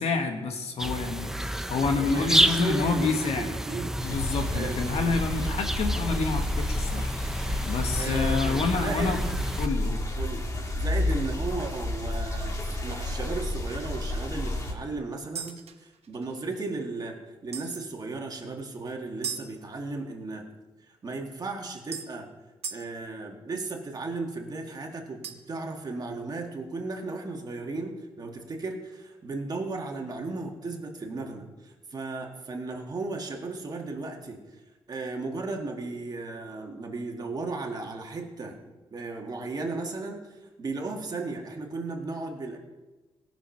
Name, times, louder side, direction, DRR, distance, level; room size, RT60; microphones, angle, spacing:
voice 1, 0.0-3.5 4.0-7.1 7.7-9.2 9.6-10.0, left 4 dB, 80° left, 4 dB, 1.5 m, -28 dB
sound 1, 0.8-9.7, right 1 dB, 5° right, 0.5 m, -30 dB
voice 2, 1.8-4.0 4.5-5.2 7.9-9.2 10.2-10.5 10.8-17.2 17.4-20.5 21.0-22.3 22.7-34.4 34.9-38.6 38.9-40.2 40.6-42.6, right 3 dB, 40° right, 2 dB, 1.7 m, -35 dB
sound 2, 4.0-14.7, left 1 dB, 30° left, 1.7 m, -31 dB
sound 3, 11.4-11.6 12.1-12.3 12.5-12.7 13.2-13.3 15.4-16.6 17.5-17.9 19.2-19.5 21.2-21.3 21.9-22.1 22.6-22.9 25.2-25.6, right 7 dB, 85° right, 0.9 m, -38 dB
17.5 x 6.0 x 5.8 m, 1.2 s
wide cardioid pair, 135°, 10 cm